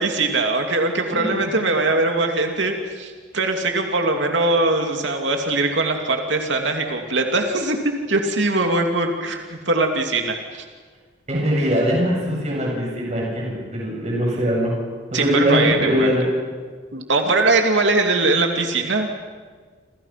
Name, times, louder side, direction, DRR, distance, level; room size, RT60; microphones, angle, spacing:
voice 1, 0.0-10.6 15.1-16.3 16.9-19.1, right 2 dB, 85° right, 3 dB, 2.7 m, -21 dB
voice 2, 1.1-1.5 11.3-14.7 15.1-16.3, equal, 35° right, -2 dB, 7.8 m, -21 dB
29.0 x 28.5 x 6.0 m, 1.5 s
head